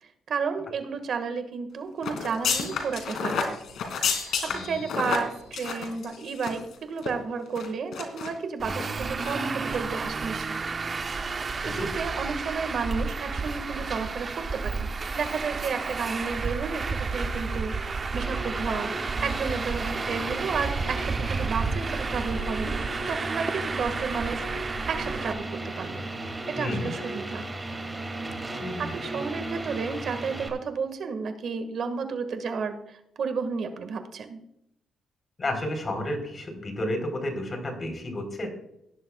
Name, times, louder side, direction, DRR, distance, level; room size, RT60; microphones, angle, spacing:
voice 1, 0.0-3.6 4.2-4.4 4.6-10.6 11.6-14.9 15.1-22.8 23.1-26.1 26.5-27.5 28.5-34.4, right 5 dB, 60° right, 7 dB, 1.8 m, -32 dB
sound 1, 2.0-6.7 7.0-7.1 7.6-8.3 8.7-8.9 9.2-9.4 9.7-9.8, left 6 dB, 70° left, 2.7 m, -30 dB
Traffic noise roadway noise, 8.6-25.3, right 4 dB, 35° right, 0.8 m, -31 dB
sound 2, 18.2-30.5, right 2 dB, 15° right, 2.6 m, -35 dB
voice 2, 26.6-26.9 28.6-29.0 35.4-38.5, left 1 dB, 35° left, 4 dB, 4.0 m, -31 dB
18.5 x 11.0 x 2.4 m, 0.78 s
cardioid pair, 90°, 0 cm